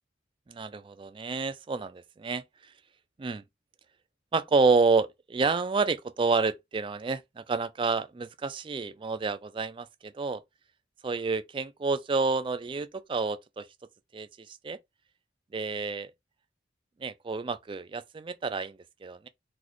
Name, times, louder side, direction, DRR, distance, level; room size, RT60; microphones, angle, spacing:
voice 1, 0.5-2.4 3.2-3.4 4.3-10.4 11.0-13.7 14.1-14.8 15.5-16.1 17.0-19.3, right 4 dB, 25° right, 0.3 m, -29 dB
3.9 x 2.4 x 3.1 m
head